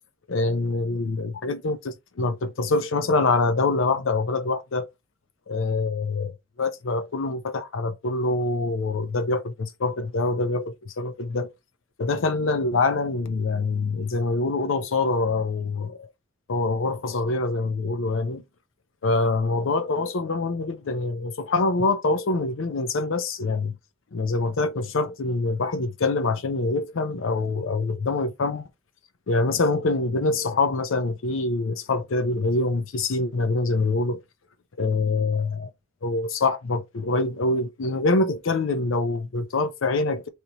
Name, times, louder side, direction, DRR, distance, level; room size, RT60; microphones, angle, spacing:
voice 1, 0.3-4.9 5.5-11.5 12.0-16.1 16.5-18.4 19.0-23.7 24.1-28.7 29.3-34.2 34.8-35.7 36.0-40.3, left 3 dB, 70° left, 0.5 m, -25 dB
3.3 x 2.9 x 4.0 m
head